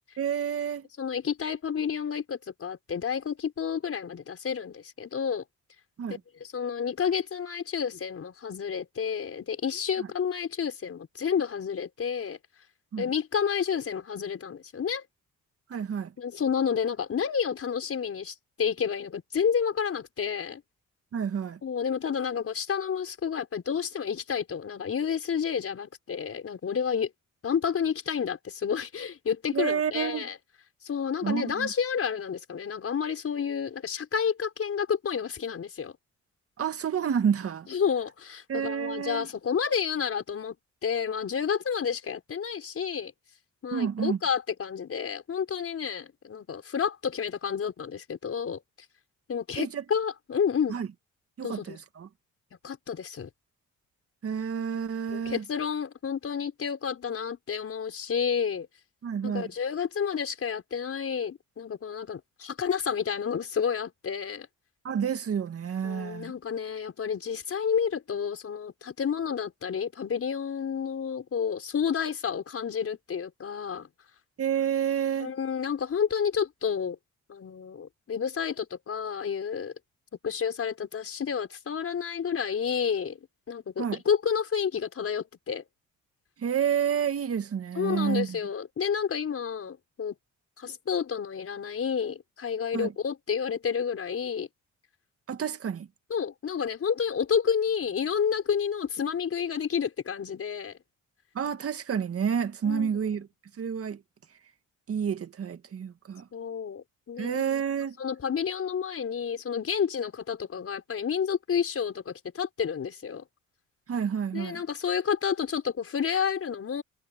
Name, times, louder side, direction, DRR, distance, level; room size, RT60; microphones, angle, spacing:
voice 1, 0.2-0.9 6.0-6.2 10.0-10.1 12.9-13.1 15.7-16.1 21.1-21.6 29.5-30.3 31.2-31.7 36.6-37.7 38.5-39.3 43.7-44.2 49.6-49.8 50.7-50.9 51.4-52.1 54.2-55.4 59.0-59.5 64.8-66.3 74.4-75.3 83.8-84.0 86.4-88.4 92.7-92.9 95.3-95.9 101.3-103.3 103.6-104.0 104.9-106.3 107.2-108.0 113.9-114.6, right 8 dB, 50° right, 2.0 m, -29 dB
voice 2, 1.0-5.4 6.4-12.4 13.0-15.0 16.2-20.6 21.6-27.1 27.4-30.4 30.8-35.9 37.7-40.6 40.8-43.1 43.6-48.6 49.3-50.8 51.4-51.8 52.6-53.3 55.1-58.7 59.2-64.5 65.8-73.9 75.2-77.0 77.3-79.7 80.2-83.2 83.5-85.6 87.8-90.2 90.6-94.5 96.1-100.8 102.6-102.9 106.3-107.4 108.0-113.2 114.3-116.8, left 7 dB, 50° left, 5.4 m, -30 dB
cardioid pair, 90°, 30 cm